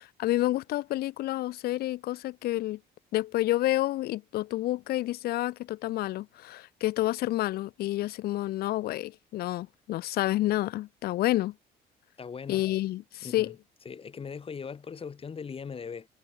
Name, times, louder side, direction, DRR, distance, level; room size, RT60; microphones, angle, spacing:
voice 1, 0.2-2.8 3.1-11.5 12.5-13.5, left 16 dB, 70° left, 0.6 m, -29 dB
voice 2, 12.2-12.6 13.2-13.6 13.8-16.1, left 6 dB, 35° left, 4.6 m, -39 dB
cardioid pair, 110°, 17 cm